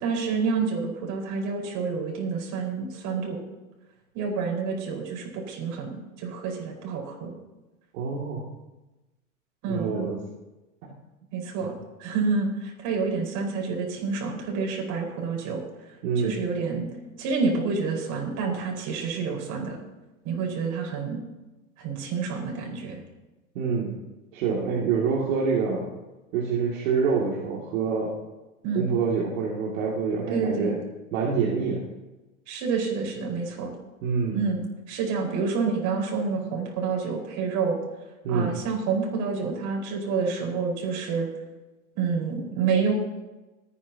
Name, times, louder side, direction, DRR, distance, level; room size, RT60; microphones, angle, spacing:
voice 1, 0.0-3.4 4.1-7.3 9.6-9.9 11.3-11.7 12.0-15.6 16.2-16.9 17.2-19.8 20.2-21.2 21.8-23.0 28.6-28.9 30.3-30.7 32.5-33.7 34.3-37.8 38.3-41.3 41.9-42.9, right 5 dB, 45° right, 0 dB, 4.9 m, -28 dB
voice 2, 7.9-8.4 9.7-10.2 10.8-10.9 16.0-16.3 23.5-23.9 24.3-25.9 26.3-28.1 28.7-30.7 31.1-31.8 34.0-34.4 38.2-38.5, right 5 dB, 65° right, -4 dB, 2.5 m, -26 dB
26.0 x 9.9 x 2.9 m, 1.1 s
hypercardioid pair, 115°, 42 cm